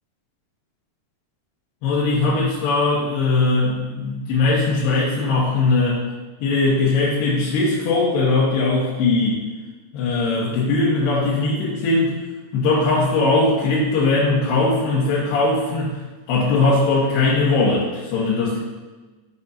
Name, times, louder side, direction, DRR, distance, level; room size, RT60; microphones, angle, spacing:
voice 1, 1.8-6.0 6.4-9.4 9.9-12.2 12.5-16.0 16.3-18.6, left 3 dB, 80° left, -8 dB, 3.3 m, -20 dB
9.0 x 6.9 x 2.6 m, 1.3 s
omnidirectional pair, 4.8 m